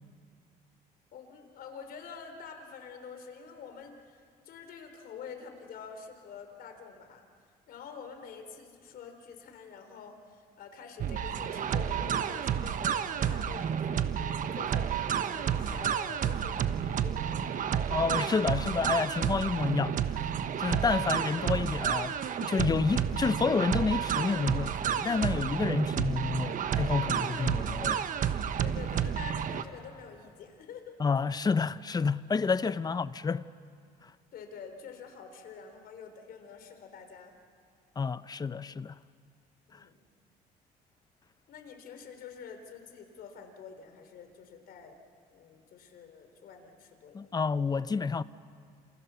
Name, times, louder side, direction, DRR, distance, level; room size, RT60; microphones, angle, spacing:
voice 1, 1.1-7.2 7.7-17.5 28.6-31.0 32.8-32.9 34.3-37.3 39.7-39.9 41.5-45.0 45.3-47.3, left 6 dB, 65° left, 3.9 m, -47 dB
sound 1, 11.0-29.6, right 8 dB, 50° right, 1.2 m, -30 dB
voice 2, 17.9-20.3 20.6-28.1 31.0-33.5 34.0-34.1 38.0-39.0 39.7-39.8 47.1-48.2, left 5 dB, 25° left, 0.7 m, -29 dB
28.5 x 27.5 x 7.1 m
cardioid pair, 110°, 17 cm